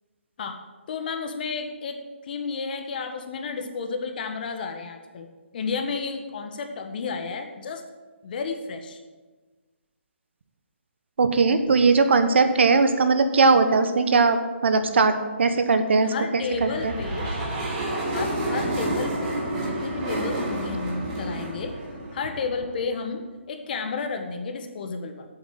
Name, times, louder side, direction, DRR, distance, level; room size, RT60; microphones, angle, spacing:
voice 1, 0.9-2.0 2.2-5.3 5.5-7.8 8.2-9.0 16.0-17.3 18.1-21.7 22.1-25.3, left 4 dB, 45° left, 6 dB, 1.5 m, -32 dB
voice 2, 11.2-16.9, right 4 dB, 65° right, 9 dB, 1.2 m, -20 dB
sound 1, 16.4-22.8, right 1 dB, 30° right, 4.0 m, -30 dB
8.3 x 7.9 x 8.9 m, 1.3 s
hypercardioid pair, 150°, 7 cm